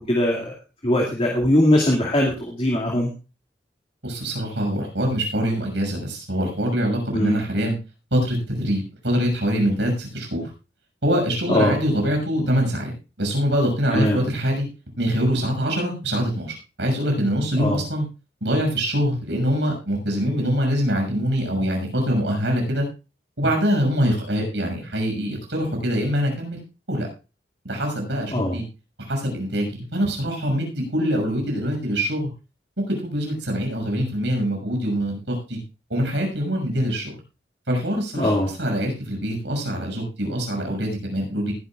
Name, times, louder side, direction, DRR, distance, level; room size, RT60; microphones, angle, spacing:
voice 1, 0.1-0.5 0.8-3.1 7.1-7.4 11.5-11.8 13.9-14.2 17.6-17.8 28.3-28.6 38.2-38.5, left 1 dB, 30° left, -1 dB, 2.3 m, -20 dB
voice 2, 4.0-7.7 8.1-10.5 11.0-12.9 13.2-14.7 15.0-18.0 18.4-22.8 23.4-26.6 26.9-27.1 27.6-28.6 29.1-32.3 32.9-35.6 35.9-37.1 37.7-41.5, equal, 80° right, 2 dB, 6.4 m, -24 dB
20.0 x 11.5 x 2.4 m, 0.30 s
head